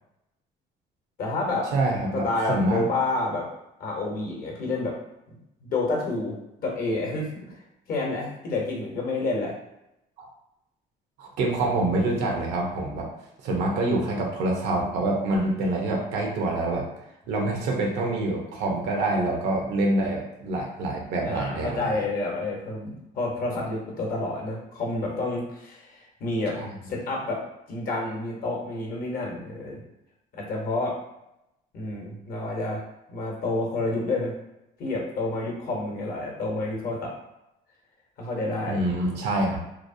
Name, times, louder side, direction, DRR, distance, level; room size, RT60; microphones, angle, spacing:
voice 1, 1.2-1.7 2.1-3.5 3.8-5.0 5.6-7.6 7.9-9.5 21.2-26.6 26.8-27.4 27.7-29.8 30.3-30.9 31.7-32.8 33.1-34.3 34.8-37.1 38.2-38.8, left 2 dB, 60° left, -1 dB, 0.9 m, -29 dB
voice 2, 1.7-2.8 10.2-10.3 11.2-13.1 13.4-16.8 17.3-22.0 26.5-26.7 38.7-39.6, right 2 dB, 85° right, 0 dB, 0.7 m, -26 dB
3.0 x 2.0 x 2.6 m, 0.85 s
cardioid pair, 110°, 17 cm